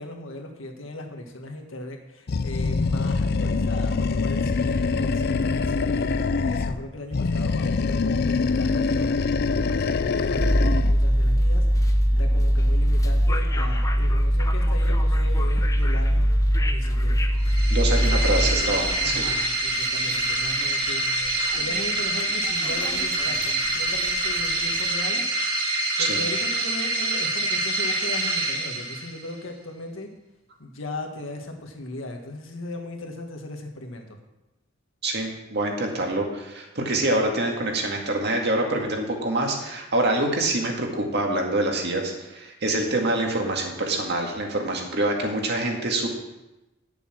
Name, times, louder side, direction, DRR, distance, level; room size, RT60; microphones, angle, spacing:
voice 1, 0.0-16.3 16.6-17.2 17.8-25.2 26.0-30.1 30.6-34.1, left 1 dB, 75° left, 2 dB, 1.7 m, -38 dB
Animal, 2.3-6.8 7.1-11.0, left 4 dB, 55° left, 0.5 m, -24 dB
sound 1, 10.4-24.8, equal, 15° left, 0.7 m, -22 dB
sound 2, 17.4-29.3, right 2 dB, 25° right, 2.4 m, -26 dB
voice 2, 17.7-19.2 26.0-26.2 35.0-46.1, right 2 dB, 55° right, 1 dB, 2.0 m, -25 dB
11.0 x 6.9 x 6.0 m, 0.98 s
head